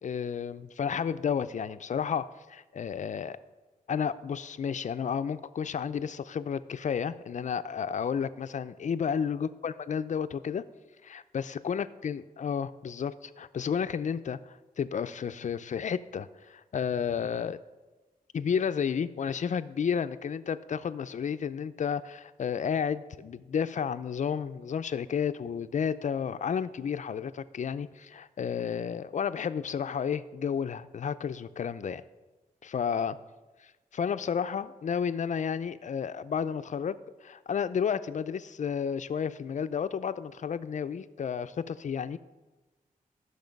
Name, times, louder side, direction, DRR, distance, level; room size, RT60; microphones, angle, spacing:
voice 1, 0.0-3.4 3.9-10.6 11.0-17.6 18.3-32.0 32.6-33.2 33.9-42.2, left 7 dB, 55° left, 13 dB, 0.5 m, -32 dB
13.0 x 6.5 x 5.2 m, 1.2 s
wide cardioid pair, 110°, 15 cm